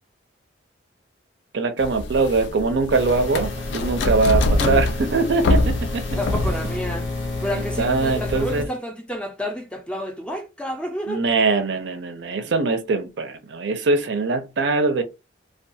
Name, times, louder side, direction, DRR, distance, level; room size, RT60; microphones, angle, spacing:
voice 1, 1.5-6.1 7.8-8.6 11.1-15.0, right 3 dB, 65° right, 0.5 m, -22 dB
sound 1, 1.8-8.4, left 2 dB, 70° left, 0.4 m, -24 dB
sound 2, 2.9-8.7, left 2 dB, 90° left, 0.8 m, -30 dB
voice 2, 6.2-7.1 7.4-11.2, equal, 5° left, 0.4 m, -30 dB
2.3 x 2.2 x 2.6 m
head